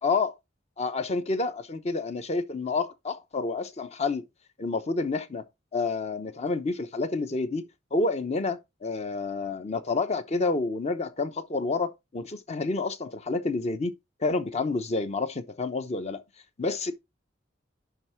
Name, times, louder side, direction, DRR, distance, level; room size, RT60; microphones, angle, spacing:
voice 1, 0.0-0.3 0.8-4.2 4.6-5.4 5.7-7.6 7.9-13.9 14.2-16.2 16.6-16.9, left 3 dB, 35° left, 0.8 m, -29 dB
10.5 x 3.7 x 4.5 m
head